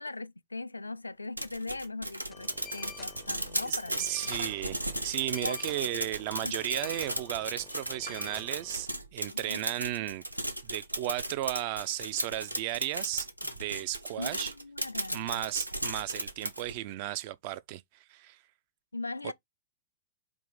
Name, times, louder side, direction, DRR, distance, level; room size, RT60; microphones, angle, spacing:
voice 1, 0.0-4.3 5.4-5.6 6.4-6.5 9.3-9.6 14.2-15.4 18.9-19.3, left 3 dB, 80° left, 0.3 m, -40 dB
sound 1, 1.4-16.8, right 1 dB, 85° right, 0.7 m, -36 dB
sound 2, 2.3-8.8, left 6 dB, 15° left, 0.4 m, -49 dB
voice 2, 3.6-10.2 10.6-13.3 13.6-14.5 15.1-18.4 19.2-19.3, right 14 dB, 45° right, 0.4 m, -35 dB
sound 3, 4.3-9.9, right 4 dB, 60° right, 1.2 m, -51 dB
4.7 x 2.5 x 3.8 m
figure-of-eight pair, 105°, 0 cm